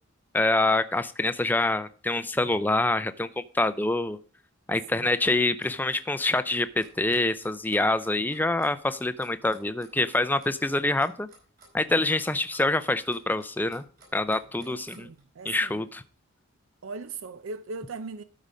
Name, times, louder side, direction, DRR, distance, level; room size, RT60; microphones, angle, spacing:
voice 1, 0.3-4.2 4.7-11.3 11.7-13.8 14.1-15.1 15.4-16.0, left 2 dB, 10° left, 0.4 m, -26 dB
Clock, 5.6-15.2, right 3 dB, 45° right, 4.4 m, -55 dB
voice 2, 14.6-15.8 16.8-18.2, right 4 dB, 70° right, 0.5 m, -39 dB
12.5 x 5.1 x 5.1 m
head